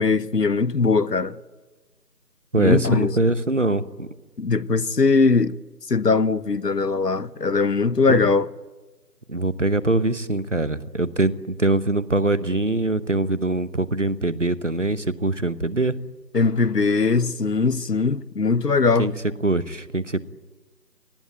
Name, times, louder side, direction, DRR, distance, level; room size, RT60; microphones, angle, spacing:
voice 1, 0.0-1.4 2.6-3.2 4.4-5.6 5.9-8.5 16.3-19.1, left 4 dB, 80° left, 1.1 m, -20 dB
voice 2, 2.5-4.1 8.1-8.3 9.3-16.0 19.0-19.1 19.4-20.2, right 2 dB, 50° right, 1.1 m, -23 dB
27.0 x 19.5 x 9.3 m
figure-of-eight pair, 180°, 48 cm